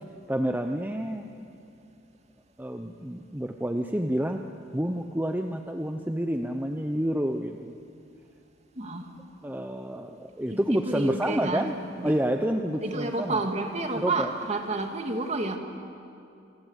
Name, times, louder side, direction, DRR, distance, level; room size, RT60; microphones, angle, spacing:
voice 1, 0.3-1.4 2.6-4.4 4.7-7.8 9.4-11.7 12.0-13.4 13.9-14.3, equal, 10° right, 5 dB, 0.8 m, -29 dB
voice 2, 8.8-9.1 10.5-11.7 12.8-15.6, right 2 dB, 35° right, 4 dB, 2.3 m, -30 dB
27.5 x 24.5 x 8.2 m, 2.5 s
head